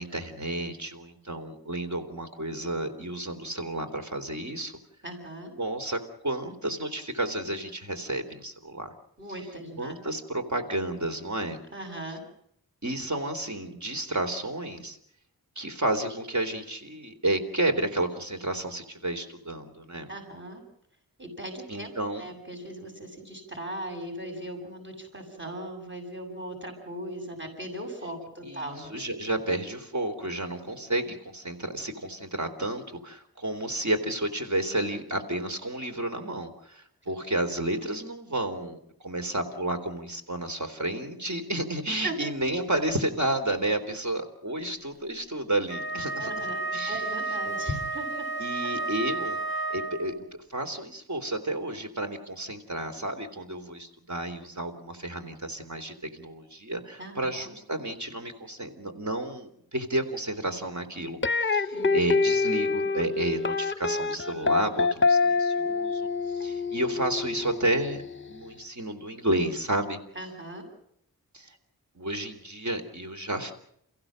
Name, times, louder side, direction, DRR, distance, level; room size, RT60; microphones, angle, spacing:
voice 1, 0.0-4.7 5.6-8.9 9.8-11.6 12.8-15.0 15.6-20.1 21.7-22.2 28.4-46.3 46.7-47.0 48.4-50.1 50.5-68.0 68.3-70.0 71.3-71.6 72.0-73.5, right 1 dB, 50° right, 6 dB, 3.8 m, -31 dB
voice 2, 5.0-5.5 9.2-9.9 11.7-12.2 20.1-20.6 21.2-21.9 22.2-29.0 42.0-42.2 46.2-48.3 48.6-48.7 57.0-57.5 61.7-62.0 70.1-70.7, right 1 dB, 30° right, 2 dB, 7.4 m, -38 dB
Wind instrument woodwind instrument, 45.6-50.3, right 3 dB, 85° right, 2.7 m, -32 dB
sound 1, 61.2-68.3, left 4 dB, 35° left, 0.8 m, -26 dB
29.5 x 16.0 x 7.7 m, 0.71 s
wide cardioid pair, 75°, 36 cm